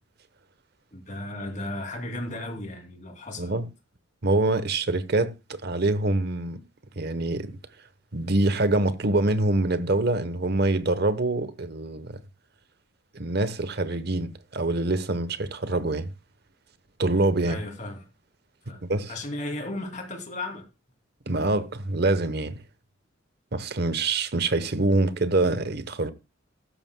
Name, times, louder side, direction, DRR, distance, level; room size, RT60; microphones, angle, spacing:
voice 1, 0.9-3.5 17.4-18.1 18.7-18.8 19.1-20.7, left 1 dB, 35° left, 2.7 m, -35 dB
voice 2, 4.2-6.6 7.0-7.6 8.1-12.2 13.1-16.1 17.0-17.6 18.8-19.1 21.3-22.6 23.5-26.1, right 2 dB, 50° right, 0.9 m, -25 dB
15.0 x 13.0 x 2.2 m
head